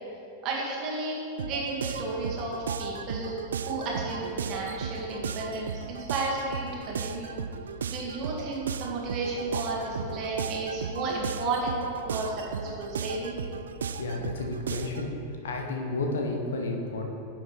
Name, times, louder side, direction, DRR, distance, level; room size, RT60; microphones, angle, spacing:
voice 1, 0.4-3.4 3.7-7.4 7.9-13.4, right 2 dB, 40° right, -3 dB, 1.9 m, -33 dB
sound 1, 1.4-15.1, right 6 dB, 65° right, 0.3 m, -35 dB
voice 2, 14.0-15.1 15.4-17.0, left 2 dB, 65° left, 2 dB, 1.0 m, -31 dB
10.0 x 7.2 x 3.3 m, 2.7 s
figure-of-eight pair, 90°, 0 cm